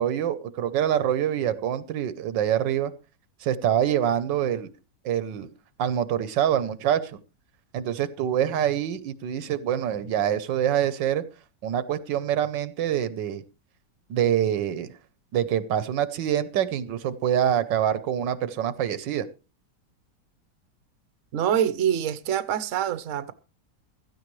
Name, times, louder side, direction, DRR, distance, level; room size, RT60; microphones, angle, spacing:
voice 1, 0.0-2.9 3.4-4.7 5.0-5.5 5.8-7.2 7.7-11.2 11.6-13.4 14.1-14.9 15.3-19.3, right 10 dB, 85° right, 1.5 m, -25 dB
voice 2, 21.3-23.3, right 9 dB, 55° right, 1.0 m, -25 dB
16.0 x 13.0 x 3.2 m
omnidirectional pair, 1.9 m